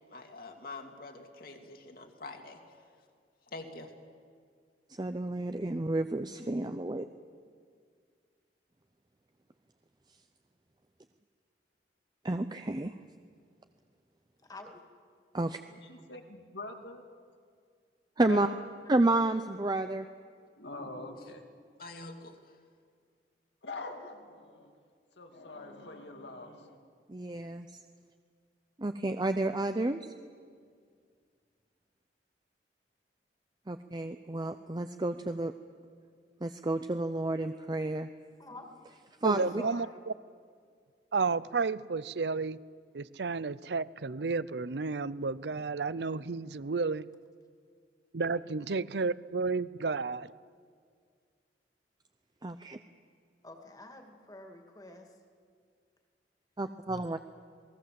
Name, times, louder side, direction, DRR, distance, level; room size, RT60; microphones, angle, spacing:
voice 1, 0.1-2.8 3.5-3.9 21.8-22.6, left 2 dB, 55° left, 4 dB, 2.4 m, -46 dB
voice 2, 5.0-7.1 12.2-12.9 15.3-15.6 18.2-18.5 18.9-20.1 27.1-27.7 28.8-30.0 33.7-35.5 36.4-38.1 39.2-39.6 52.4-52.8 56.6-57.2, right 2 dB, 25° right, 9 dB, 0.6 m, -30 dB
voice 3, 14.4-14.8 16.0-16.1 38.4-38.7 39.3-40.0 53.4-55.1, left 2 dB, 20° left, 4 dB, 2.4 m, -48 dB
voice 4, 15.7-17.0 18.3-18.6 20.6-21.4 23.6-24.7 25.2-26.8, left 2 dB, 85° left, 4 dB, 2.6 m, -44 dB
voice 5, 39.2-40.1 41.1-42.6 42.9-47.1 48.1-50.3, right 4 dB, 70° right, 18 dB, 0.6 m, -32 dB
28.0 x 19.5 x 7.7 m, 2.1 s
head